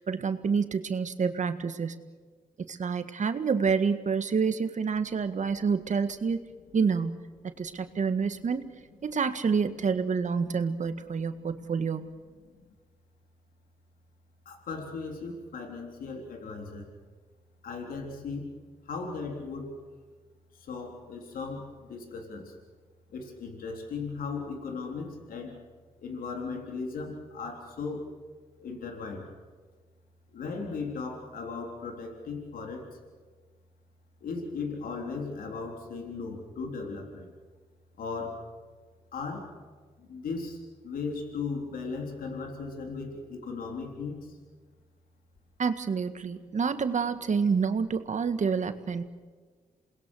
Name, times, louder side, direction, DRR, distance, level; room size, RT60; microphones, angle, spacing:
voice 1, 0.0-2.0 2.6-6.4 6.7-7.3 7.6-8.6 9.0-12.1 45.6-49.0, right 5 dB, 60° right, 10 dB, 1.7 m, -28 dB
voice 2, 14.5-16.9 17.6-18.5 18.9-19.7 20.5-22.5 23.1-25.6 26.0-28.1 28.6-29.3 30.3-33.0 34.2-37.3 38.0-38.4 39.1-39.5 40.0-44.4, left 4 dB, 85° left, 2 dB, 3.7 m, -37 dB
28.0 x 20.5 x 6.4 m, 1.5 s
cardioid pair, 60°, 14 cm